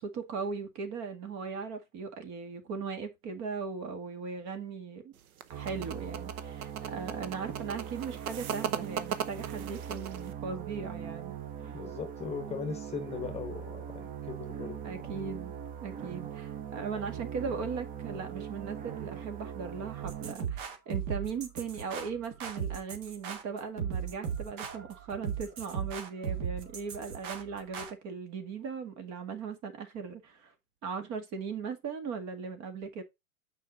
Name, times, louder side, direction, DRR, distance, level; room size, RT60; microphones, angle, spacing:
voice 1, 0.0-5.1 5.5-11.4 14.8-15.5 15.8-30.5 30.8-33.0, right 5 dB, 40° right, 1.9 m, -38 dB
sound 1, 5.2-10.3, right 8 dB, 75° right, 1.1 m, -38 dB
sound 2, 5.5-20.4, right 8 dB, 20° right, 0.7 m, -41 dB
voice 2, 11.7-14.8, left 6 dB, 15° left, 1.3 m, -39 dB
sound 3, 20.0-27.9, right 7 dB, 60° right, 2.3 m, -37 dB
6.5 x 5.0 x 4.0 m
hypercardioid pair, 125°, 43 cm